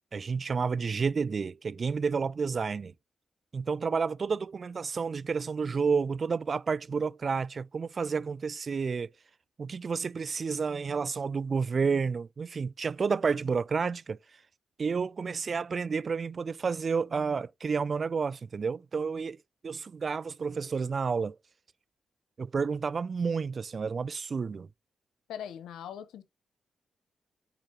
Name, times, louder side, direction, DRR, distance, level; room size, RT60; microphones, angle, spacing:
voice 1, 0.1-2.9 3.5-9.1 9.6-14.2 14.8-19.4 19.6-21.4 22.4-24.7, right 5 dB, 50° right, 0.3 m, -30 dB
voice 2, 25.3-26.2, left 9 dB, 80° left, 0.9 m, -40 dB
8.9 x 4.8 x 3.0 m
supercardioid pair, 45°, 0 cm